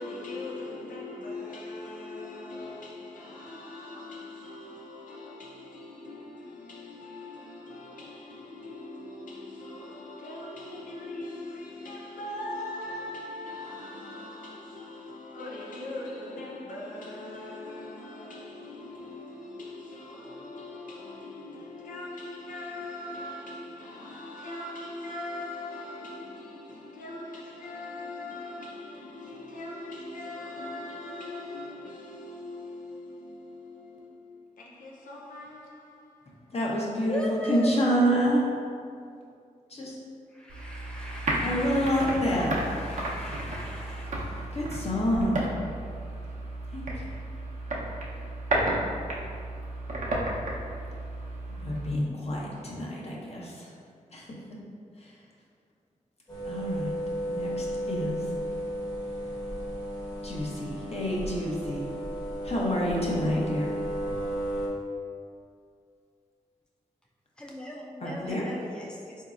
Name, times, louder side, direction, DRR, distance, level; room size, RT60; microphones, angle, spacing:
voice 1, 0.0-36.5, left 2 dB, 75° left, 0.4 m, -41 dB
voice 2, 36.5-38.4 39.7-40.0 40.8-45.4 46.7-46.8 51.6-53.7 54.1-54.2 55.0-55.2 56.4-56.9 57.3-58.2 60.2-61.8 62.4-63.7 68.0-68.4, equal, 50° left, 0.8 m, -29 dB
voice 3, 37.0-38.1 40.3-44.1 67.4-69.2, equal, 5° left, 0.5 m, -38 dB
sound 1, 40.5-51.9, right 1 dB, 65° right, 0.7 m, -33 dB
sound 2, 56.3-64.7, right 1 dB, 30° left, 1.0 m, -34 dB
4.0 x 2.7 x 2.4 m
cardioid pair, 50°, 14 cm